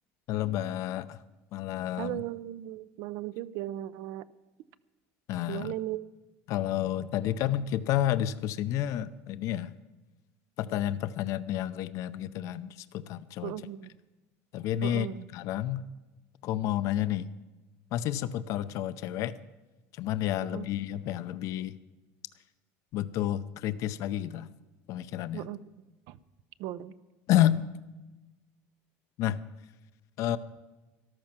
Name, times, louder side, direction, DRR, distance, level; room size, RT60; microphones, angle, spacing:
voice 1, 0.3-1.2 1.5-2.2 5.3-5.7 6.5-9.7 10.6-13.5 14.5-15.1 15.3-15.9 16.4-17.3 17.9-19.3 20.0-21.7 22.9-24.5 24.9-25.5 27.3-27.7 29.2-29.4 30.2-30.4, left 12 dB, 60° left, 14 dB, 0.6 m, -30 dB
voice 2, 2.0-4.3 5.5-6.1 13.4-13.9 14.8-15.3 20.5-20.7 25.3-25.6 26.1-26.2 26.6-27.0, right 14 dB, 70° right, 16 dB, 0.6 m, -37 dB
14.0 x 12.0 x 6.0 m, 1.1 s
cardioid pair, 130°, 6 cm